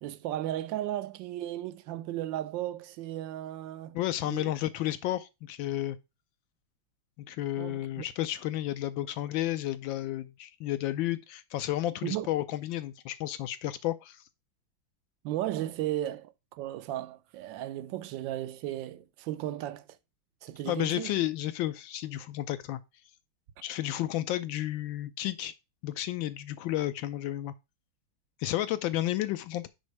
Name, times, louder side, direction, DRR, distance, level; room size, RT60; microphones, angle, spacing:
voice 1, 0.0-4.0 4.2-4.5 7.6-8.0 12.0-12.3 15.2-19.9 20.4-21.1, right 13 dB, 75° right, 1.2 m, -35 dB
voice 2, 3.9-6.0 7.2-14.2 20.7-22.8 23.6-25.5 25.8-27.5 28.4-29.7, left 14 dB, 75° left, 1.2 m, -32 dB
6.4 x 5.1 x 4.6 m
omnidirectional pair, 2.3 m